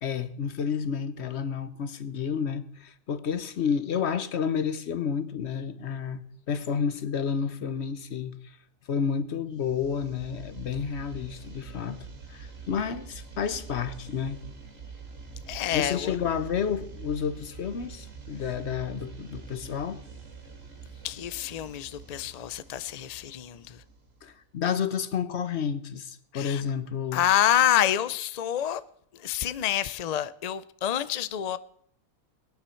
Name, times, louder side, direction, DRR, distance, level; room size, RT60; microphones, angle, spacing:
voice 1, 0.0-8.6 8.9-14.4 15.7-20.0 24.2-27.2, left 7 dB, 55° left, 1.1 m, -30 dB
sound 1, 9.6-24.4, right 5 dB, 60° right, 2.4 m, -45 dB
voice 2, 15.5-16.1 21.0-23.8 26.3-26.6 27.1-28.8 29.1-31.6, left 11 dB, 75° left, 0.3 m, -27 dB
22.5 x 9.4 x 4.4 m
omnidirectional pair, 1.5 m